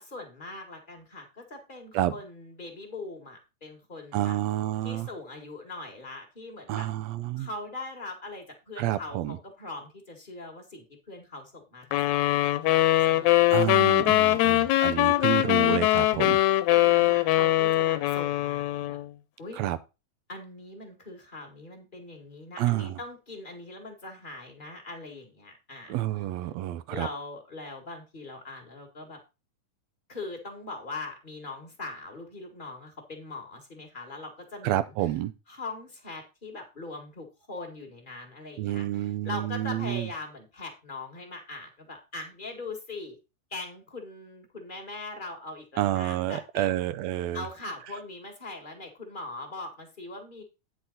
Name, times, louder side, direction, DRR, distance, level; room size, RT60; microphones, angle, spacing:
voice 1, 0.0-4.4 4.8-6.9 7.4-11.9 12.6-12.8 13.1-13.6 16.7-19.0 19.4-19.6 20.3-26.2 26.9-29.2 30.1-34.9 35.5-43.2 43.5-46.7 47.3-50.4, left 2 dB, 25° left, 1.3 m, -41 dB
voice 2, 4.1-5.1 6.7-7.5 8.8-9.4 13.5-16.4 19.6-19.8 22.6-23.0 25.9-27.1 34.6-35.3 38.6-40.1 45.8-47.4, right 13 dB, 75° right, 1.8 m, -29 dB
sound 1, 11.9-19.1, left 15 dB, 80° left, 2.0 m, -22 dB
9.3 x 6.3 x 4.0 m
omnidirectional pair, 3.4 m